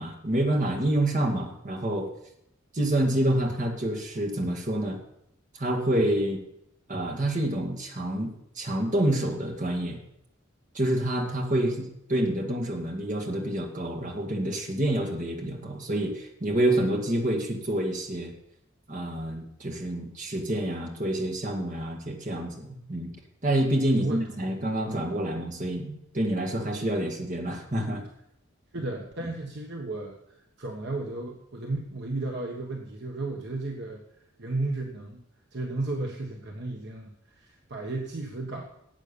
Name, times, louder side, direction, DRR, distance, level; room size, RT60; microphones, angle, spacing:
voice 1, 0.0-2.1 2.7-5.0 5.5-6.4 6.9-10.0 10.7-18.3 18.9-23.1 23.4-28.0, right 1 dB, 40° right, 2 dB, 2.1 m, -28 dB
voice 2, 23.9-24.6 28.7-35.2 35.5-38.6, right 2 dB, 55° right, 1 dB, 1.3 m, -34 dB
12.0 x 8.4 x 6.9 m, 0.78 s
head